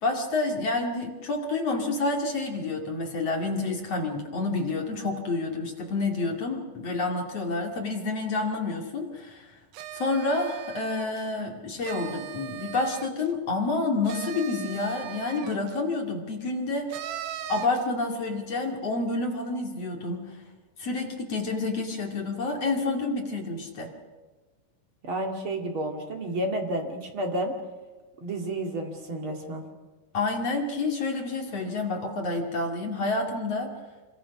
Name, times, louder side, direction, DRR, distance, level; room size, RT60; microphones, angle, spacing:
voice 1, 0.0-9.5 9.9-17.0 17.5-20.3 20.8-23.9 30.1-33.7, left 3 dB, 45° left, 1 dB, 2.3 m, -29 dB
sound 1, 9.7-11.3 11.8-13.3 14.1-15.8 16.9-17.9, right 12 dB, 85° right, 3.8 m, -39 dB
voice 2, 25.0-27.5 28.2-29.6, right 1 dB, 45° right, 2 dB, 1.6 m, -31 dB
27.0 x 24.0 x 6.0 m, 1.3 s
omnidirectional pair, 5.9 m